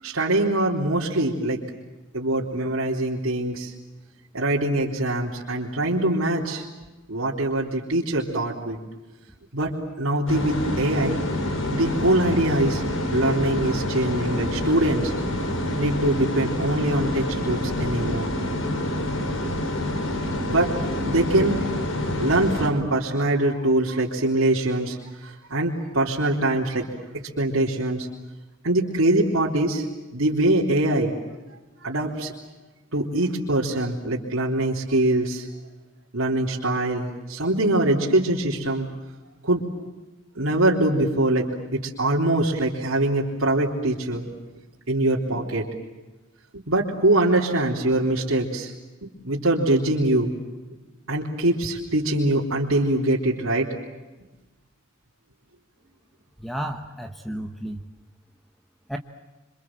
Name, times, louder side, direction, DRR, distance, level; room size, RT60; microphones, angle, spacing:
voice 1, 0.0-1.6 2.1-3.7 4.3-6.6 7.1-8.8 9.5-9.7 10.0-11.2 11.7-12.8 13.1-15.1 15.8-18.3 20.5-20.7 21.1-21.6 22.2-25.0 25.2-26.9 27.4-28.1 28.6-29.8 30.1-31.1 31.8-32.3 32.9-35.5 36.1-38.9 39.4-39.6 40.4-44.3 44.9-45.6 46.5-48.7 49.0-50.3 51.1-53.7, right 1 dB, 85° right, -4 dB, 3.7 m, -23 dB
sound 1, 10.3-22.7, left 1 dB, 80° left, 4.6 m, -27 dB
voice 2, 56.4-57.8 58.9-59.0, right 1 dB, ahead, 5 dB, 1.1 m, -32 dB
27.5 x 26.0 x 7.6 m, 1.2 s
head